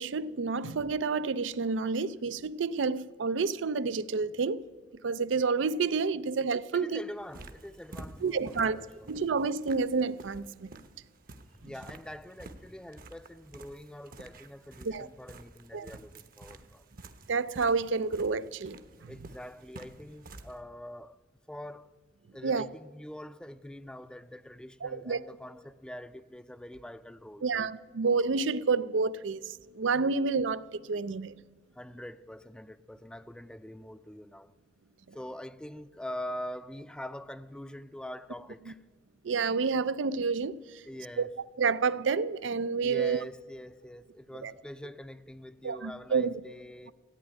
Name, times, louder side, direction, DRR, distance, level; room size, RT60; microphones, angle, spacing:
voice 1, 0.0-4.6 5.0-7.0 8.2-10.7 14.8-15.1 15.7-15.9 17.3-19.1 22.4-22.6 24.8-25.2 27.4-31.3 39.2-40.8 41.2-41.3 41.6-43.2 44.4-44.5 45.6-46.3, right 4 dB, 85° right, 0.5 m, -29 dB
voice 2, 6.7-9.2 11.6-16.8 19.1-21.2 21.5-21.9 22.3-27.7 31.7-34.5 35.1-38.8 40.8-41.3 42.8-46.9, left 1 dB, 5° left, 0.4 m, -44 dB
sound 1, 7.2-20.6, right 2 dB, 50° right, 0.9 m, -50 dB
14.5 x 8.8 x 9.8 m
head